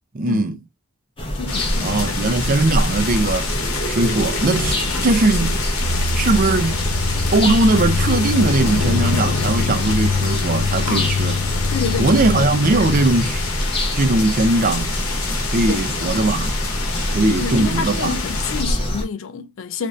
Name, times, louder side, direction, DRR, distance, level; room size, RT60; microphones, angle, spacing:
voice 1, 0.1-0.6 1.8-3.5 3.8-4.8 5.0-5.6 6.1-6.8 7.3-11.4 12.0-13.4 13.9-14.9 15.5-16.5 17.1-18.2, right 2 dB, 40° right, 0.4 m, -19 dB
sound 1, 1.2-19.0, equal, 25° left, 0.7 m, -25 dB
voice 2, 1.3-2.2 10.9-11.1 11.7-12.5 12.8-13.0 15.7-15.9 17.3-19.9, left 6 dB, 65° left, 0.4 m, -28 dB
sound 2, 1.5-18.6, left 3 dB, 85° left, 0.9 m, -27 dB
sound 3, 5.8-13.6, left 5 dB, 50° left, 1.0 m, -25 dB
2.5 x 2.4 x 3.1 m
head